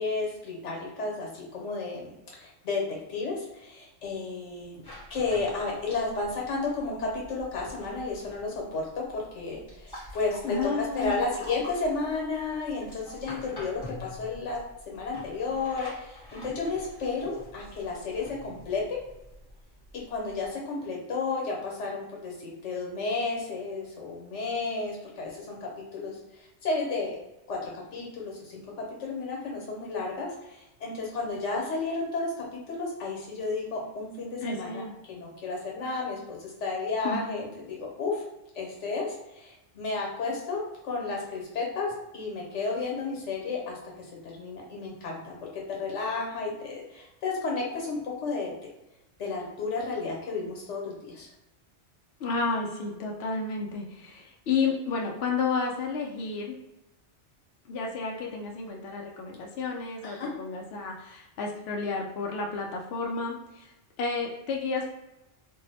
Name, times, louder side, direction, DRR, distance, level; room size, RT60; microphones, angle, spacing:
voice 1, 0.0-2.8 3.1-4.8 5.1-14.6 14.9-19.0 20.1-27.2 27.5-28.7 29.0-34.8 35.1-38.2 38.5-43.8 44.2-48.5 49.2-51.3 60.0-60.3, left 3 dB, 85° left, -1 dB, 1.2 m, -32 dB
sound 1, 4.8-20.5, left 1 dB, 25° left, 0.7 m, -47 dB
voice 2, 10.4-11.2 34.4-34.9 37.0-37.2 52.2-56.5 57.7-63.7 64.0-64.9, left 4 dB, 70° left, 0 dB, 0.8 m, -31 dB
2.6 x 2.0 x 4.0 m, 0.92 s
omnidirectional pair, 1.2 m